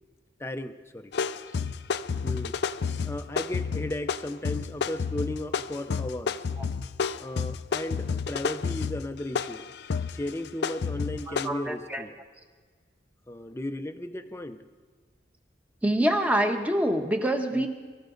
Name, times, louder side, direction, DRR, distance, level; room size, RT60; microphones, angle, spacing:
voice 1, 0.4-1.2 2.2-2.6 3.0-6.4 7.2-9.7 10.1-12.2 13.3-14.7 17.5-17.7, left 1 dB, 15° left, 7 dB, 0.7 m, -35 dB
sound 1, 1.1-11.5, left 5 dB, 65° left, 0.5 m, -30 dB
voice 2, 11.3-12.0 15.8-17.7, right 1 dB, 10° right, 4 dB, 1.2 m, -25 dB
24.0 x 14.5 x 3.9 m, 1.5 s
head